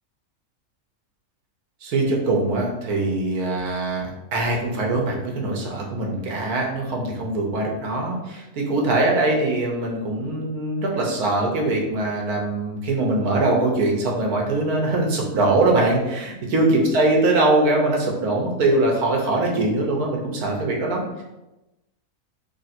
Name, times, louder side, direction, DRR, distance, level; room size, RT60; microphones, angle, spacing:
voice 1, 1.8-16.7 16.9-21.2, right 2 dB, 80° right, -1 dB, 1.4 m, -22 dB
3.4 x 2.6 x 4.2 m, 0.99 s
omnidirectional pair, 1.6 m